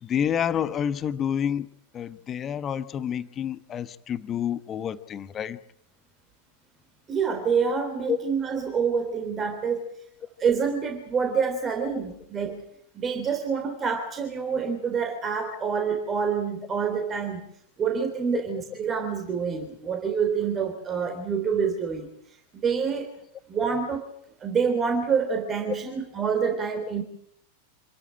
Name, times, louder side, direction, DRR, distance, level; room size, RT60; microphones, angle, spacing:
voice 1, 0.0-1.7 1.9-5.6 8.1-8.2, left 9 dB, 25° left, 1.1 m, -28 dB
voice 2, 7.1-9.8 10.4-12.6 12.9-17.4 17.8-22.1 22.6-23.1 23.5-24.1 24.4-27.0, right 6 dB, 25° right, 3.5 m, -27 dB
27.0 x 14.0 x 10.0 m
figure-of-eight pair, 90°, 0 cm